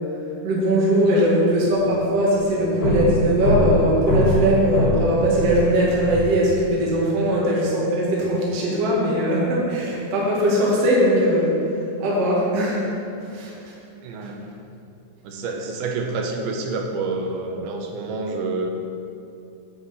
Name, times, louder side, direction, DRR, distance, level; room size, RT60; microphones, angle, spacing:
voice 1, 0.4-11.5 12.0-12.9 13.3-13.5, equal, 50° right, -5 dB, 2.1 m, -20 dB
voice 2, 1.1-1.4 7.2-7.4 14.0-14.4 15.2-18.7, right 3 dB, 75° right, 2 dB, 2.7 m, -28 dB
sound 1, 1.8-2.0 2.3-6.3, left 1 dB, 70° left, 3.7 m, -23 dB
9.8 x 7.3 x 4.2 m, 2.6 s
omnidirectional pair, 4.5 m